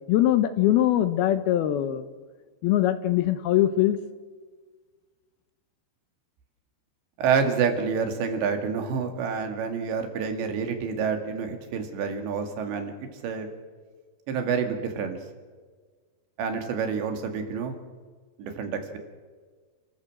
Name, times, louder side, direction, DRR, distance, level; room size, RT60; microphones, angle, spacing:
voice 1, 0.1-2.1 2.6-4.0, left 13 dB, 75° left, 11 dB, 2.5 m, -22 dB
voice 2, 7.2-13.5 14.3-15.2 16.4-17.8 18.4-19.0, right 6 dB, 80° right, 6 dB, 4.4 m, -28 dB
29.5 x 14.0 x 7.7 m, 1.5 s
omnidirectional pair, 5.0 m